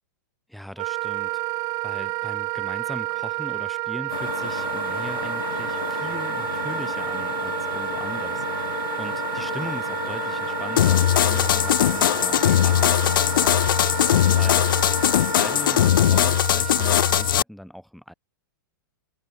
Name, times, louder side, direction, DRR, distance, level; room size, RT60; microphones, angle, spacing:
voice 1, 0.5-13.7 14.3-14.7 15.3-18.1, equal, ahead, 5.0 m, -39 dB
Wind instrument woodwind instrument, 0.8-17.4, right 23 dB, 30° right, 3.9 m, -30 dB
sound 1, 4.1-15.9, left 10 dB, 90° left, 1.2 m, -32 dB
sound 2, 10.8-17.4, left 11 dB, 75° left, 0.8 m, -20 dB
supercardioid pair, 160°, 11 cm